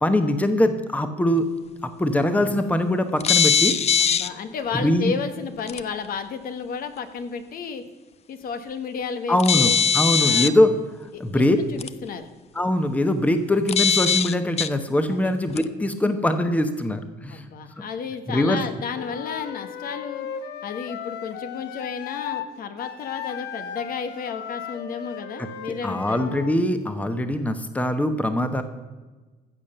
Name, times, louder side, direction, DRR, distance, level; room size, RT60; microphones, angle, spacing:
voice 1, 0.0-1.5 2.0-3.8 4.7-5.2 9.3-10.7 11.0-11.6 12.5-17.5 17.8-17.9 18.3-18.6 25.4-25.5 25.8-28.6, left 1 dB, 10° left, 9 dB, 1.0 m, -22 dB
sound 1, 3.2-4.3 5.7-5.8 9.4-10.5 11.8-11.9 13.7-14.7 15.6-15.7, left 6 dB, 40° left, 0.6 m, -20 dB
voice 2, 4.0-7.8 8.3-9.8 10.2-10.5 11.1-11.4 11.7-12.2 15.1-15.3 17.3-20.3 20.6-26.2, left 6 dB, 60° left, 9 dB, 1.3 m, -32 dB
Wind instrument woodwind instrument, 18.9-22.5 22.8-26.6, left 8 dB, 80° left, 1.1 m, -36 dB
14.5 x 7.0 x 6.7 m, 1.2 s
cardioid pair, 110°, 17 cm